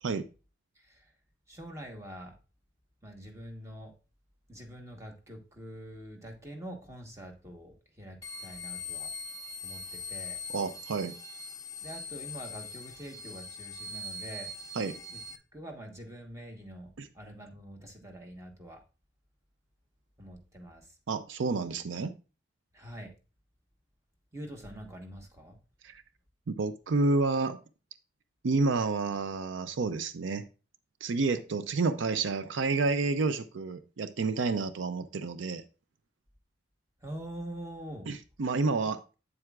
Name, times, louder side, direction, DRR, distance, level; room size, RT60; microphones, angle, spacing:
voice 1, 1.5-2.3 3.0-3.9 4.5-9.1 9.6-10.4 11.8-14.5 15.1-15.2 15.5-18.8 20.2-20.9 22.7-23.1 24.3-25.6 37.0-38.1, right 1 dB, 15° right, 3 dB, 1.2 m, -45 dB
sound 1, 8.2-15.4, left 3 dB, 20° left, 0.4 m, -41 dB
voice 2, 10.5-11.1 14.7-15.0 17.0-17.1 21.1-22.1 25.8-26.0 26.5-27.6 28.4-30.4 31.0-35.6 38.1-39.0, right 3 dB, 75° right, 12 dB, 0.5 m, -29 dB
8.4 x 7.5 x 2.4 m, 0.33 s
head